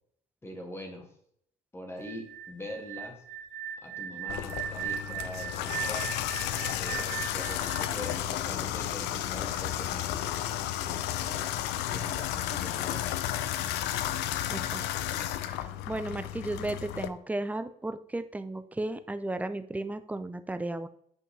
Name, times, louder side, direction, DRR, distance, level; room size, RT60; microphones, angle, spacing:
voice 1, 0.4-1.1 1.7-3.2 3.8-6.3 6.8-10.3 10.8-11.5 11.9-13.1, left 1 dB, 15° left, 2 dB, 1.8 m, -43 dB
sound 1, 2.0-8.9, right 9 dB, 85° right, 0.5 m, -38 dB
Water tap faucet / Bathtub (filling or washing), 4.3-17.1, left 12 dB, 90° left, 0.5 m, -33 dB
voice 2, 14.5-14.8 15.4-20.9, right 2 dB, 10° right, 11 dB, 0.5 m, -34 dB
8.7 x 5.2 x 3.3 m, 0.69 s
cardioid pair, 110°, 17 cm